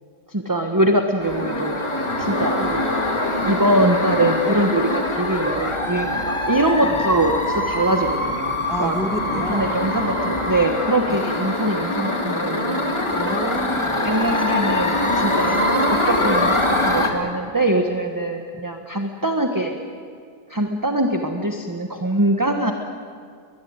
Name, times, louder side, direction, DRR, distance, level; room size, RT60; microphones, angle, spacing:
voice 1, 0.3-1.8 2.2-2.8 3.4-9.0 9.3-12.9 14.0-15.7 16.0-19.8 20.5-22.7, right 1 dB, 15° right, 4 dB, 1.2 m, -23 dB
sound 1, 1.2-17.1, left 1 dB, 20° left, 2.2 m, -23 dB
voice 2, 8.7-9.7 11.1-11.3 13.1-14.0, right 1 dB, ahead, 5 dB, 1.7 m, -30 dB
22.5 x 20.5 x 9.6 m, 2.2 s
omnidirectional pair, 1.6 m